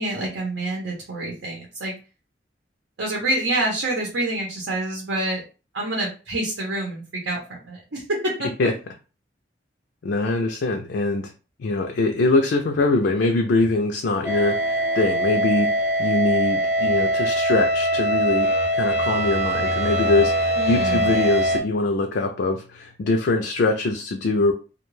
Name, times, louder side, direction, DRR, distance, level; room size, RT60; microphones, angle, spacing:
voice 1, 0.0-1.9 3.0-5.4 5.7-8.5 20.6-21.1, right 1 dB, 85° right, -1 dB, 0.8 m, -27 dB
voice 2, 10.0-11.3 11.6-24.5, left 2 dB, 60° left, 3 dB, 0.4 m, -23 dB
sound 1, 14.2-21.6, right 1 dB, 10° right, 0.5 m, -22 dB
2.4 x 2.2 x 3.1 m, 0.34 s
head